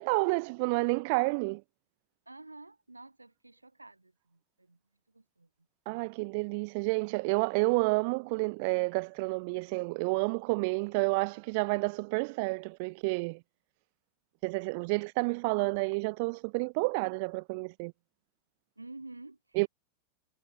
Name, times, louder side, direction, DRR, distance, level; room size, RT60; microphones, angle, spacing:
voice 1, 0.0-1.6 5.9-13.4 14.4-17.9 19.6-19.7, right 30 dB, 45° right, 0.6 m, -30 dB
voice 2, 2.2-4.8 5.1-5.5 18.8-19.7, right 2 dB, 85° right, 6.6 m, -50 dB
figure-of-eight pair, 90°, 0 cm